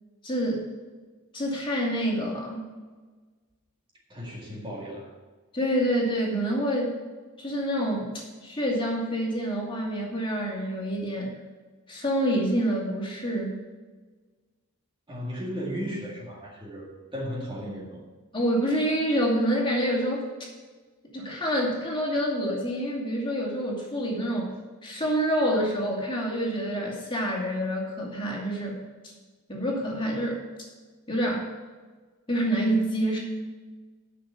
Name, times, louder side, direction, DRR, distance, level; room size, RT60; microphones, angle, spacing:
voice 1, 0.2-0.6 1.3-2.6 5.5-6.9 7.4-11.3 11.9-13.6 18.3-20.2 21.1-24.5 24.8-28.8 29.5-30.4 31.1-31.5 32.3-33.2, equal, 20° left, -2 dB, 2.4 m, -27 dB
voice 2, 4.1-5.1 15.1-18.0, equal, 20° right, -3 dB, 1.9 m, -35 dB
10.5 x 6.2 x 6.9 m, 1.4 s
head